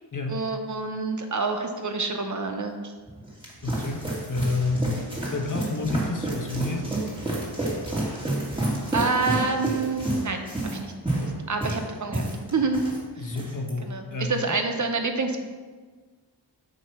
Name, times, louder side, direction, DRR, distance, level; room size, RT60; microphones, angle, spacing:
voice 1, 0.3-2.9 7.9-8.5 8.9-12.8 13.2-13.4 13.9-15.4, right 4 dB, 40° right, 5 dB, 0.8 m, -28 dB
sound 1, 3.1-13.0 13.3-13.7, right 1 dB, 10° right, 1.9 m, -30 dB
voice 2, 3.6-5.0 5.3-7.0 13.2-13.8 14.1-14.4, left 3 dB, 45° left, 3 dB, 1.0 m, -29 dB
7.7 x 2.9 x 5.6 m, 1.4 s
cardioid pair, 55°, 45 cm